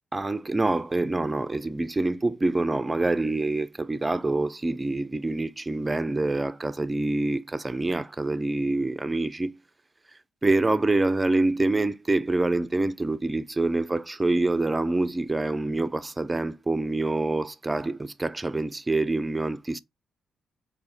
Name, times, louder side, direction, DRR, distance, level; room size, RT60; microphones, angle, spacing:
voice 1, 0.1-9.6 10.4-19.8, right 2 dB, 25° right, 0.5 m, -26 dB
4.1 x 2.8 x 3.9 m
hypercardioid pair, 40°, 0 cm